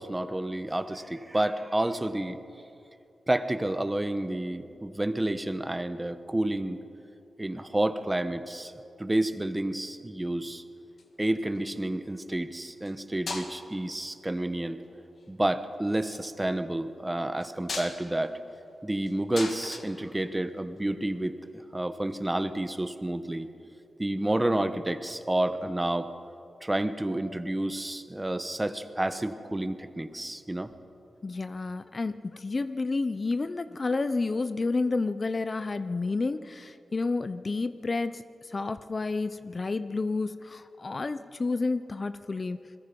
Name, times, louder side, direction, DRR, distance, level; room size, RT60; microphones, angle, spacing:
voice 1, 0.0-2.4 3.3-6.8 7.4-8.7 9.0-10.6 11.2-14.8 15.3-18.4 18.8-21.4 21.7-23.5 24.0-26.1 26.6-30.7, right 1 dB, 15° right, 10 dB, 1.2 m, -30 dB
sound 1, 10.8-11.6 12.8-13.0 13.3-13.9 14.8-15.3 17.4-20.8 22.1-22.2, left 3 dB, 65° left, 2.3 m, -39 dB
voice 2, 31.2-42.6, left 3 dB, 40° left, 12 dB, 0.7 m, -30 dB
27.5 x 21.5 x 5.3 m, 2.7 s
cardioid pair, 85°, 0 cm